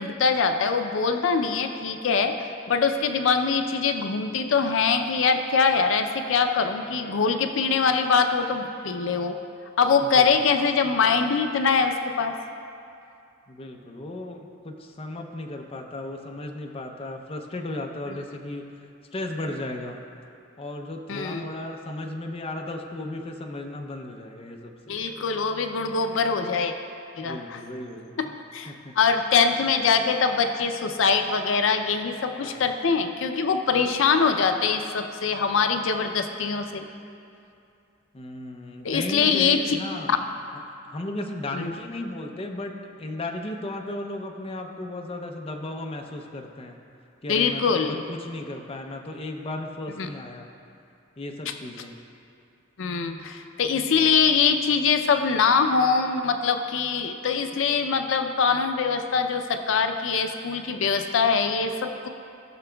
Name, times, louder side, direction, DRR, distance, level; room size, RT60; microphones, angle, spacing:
voice 1, 0.0-9.4 9.8-12.4 21.1-21.5 24.9-26.7 27.2-27.6 28.2-36.9 38.8-39.8 40.1-40.2 41.5-41.7 47.3-48.0 50.0-50.1 51.5-51.6 52.8-62.1, left 5 dB, 80° left, 6 dB, 0.5 m, -23 dB
voice 2, 10.0-10.3 13.5-18.7 19.1-20.0 20.6-25.0 27.2-28.3 28.7-28.9 32.4-32.7 38.1-40.1 40.8-42.7 43.0-46.8 47.2-50.5 51.2-52.0, left 2 dB, 30° left, 3 dB, 0.6 m, -35 dB
16.5 x 6.0 x 2.2 m, 2.5 s
head